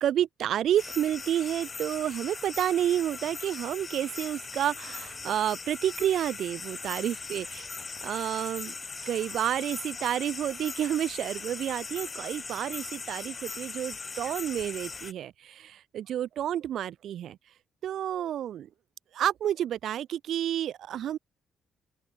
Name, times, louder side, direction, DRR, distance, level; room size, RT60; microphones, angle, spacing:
voice 1, 0.0-7.7 8.0-8.7 9.1-17.4 17.8-18.7 19.1-21.2, right 11 dB, 70° right, 2.0 m, -30 dB
sound 1, 0.8-15.1, left 4 dB, 30° left, 2.2 m, -40 dB
open air
cardioid pair, 90°, 0 cm